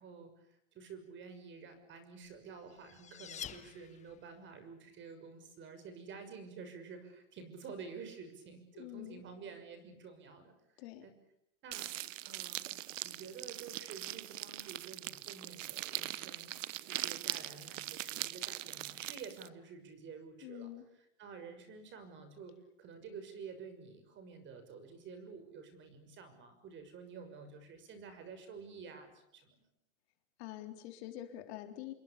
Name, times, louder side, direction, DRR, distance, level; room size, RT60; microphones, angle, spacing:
voice 1, 0.0-11.1 11.6-11.9 12.2-12.7 13.0-16.5 16.8-20.7 21.2-29.7, right 5 dB, 30° right, 10 dB, 6.5 m, -50 dB
sound 1, 2.4-4.4, left 8 dB, 20° left, 1.4 m, -48 dB
voice 2, 8.7-9.2 10.8-11.1 20.4-20.9 30.4-31.9, left 13 dB, 55° left, 6 dB, 3.8 m, -46 dB
sound 2, 11.7-19.5, right 14 dB, 75° right, 1.1 m, -41 dB
28.0 x 22.0 x 8.5 m, 0.75 s
supercardioid pair, 140°, 39 cm